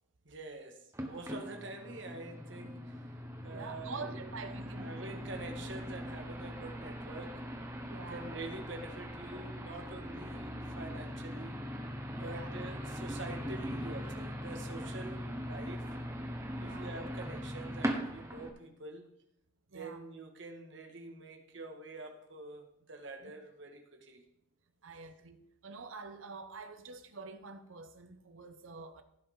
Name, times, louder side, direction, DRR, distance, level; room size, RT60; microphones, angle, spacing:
voice 1, 0.2-3.1 3.4-4.3 4.7-7.5 8.1-11.6 12.2-15.9 16.6-19.1 19.7-24.2, right 2 dB, 65° right, 1.6 m, -46 dB
sound 1, 0.9-18.5, equal, 15° right, 1.0 m, -40 dB
voice 2, 3.5-5.1 7.9-8.3 12.2-12.5 16.6-16.9 19.7-20.0 23.2-23.3 24.8-29.0, right 4 dB, 90° right, 0.9 m, -46 dB
16.5 x 5.6 x 3.8 m
head